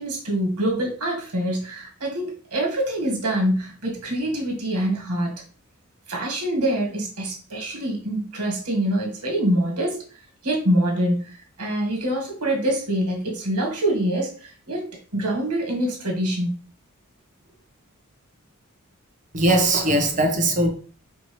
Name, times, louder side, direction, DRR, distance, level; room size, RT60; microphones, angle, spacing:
voice 1, 0.0-5.3 6.1-16.6, right 1 dB, 90° right, 1.6 m, -25 dB
voice 2, 19.3-20.7, right 1 dB, 35° right, 0.7 m, -20 dB
4.4 x 2.7 x 3.1 m
head